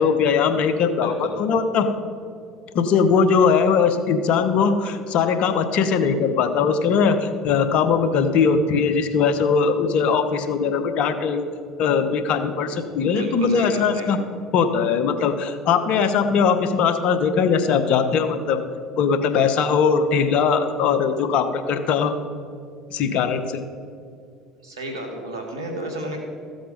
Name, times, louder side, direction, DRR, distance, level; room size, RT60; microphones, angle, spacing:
voice 1, 0.0-1.9 2.7-11.4 11.8-14.2 14.5-18.6 19.0-22.1 22.9-23.6, left 6 dB, 60° left, 9 dB, 1.0 m, -20 dB
voice 2, 1.0-1.4 13.2-14.1 24.6-26.2, right 1 dB, 90° right, 3 dB, 1.9 m, -32 dB
14.0 x 7.8 x 5.2 m, 2.4 s
hypercardioid pair, 70°, 2 cm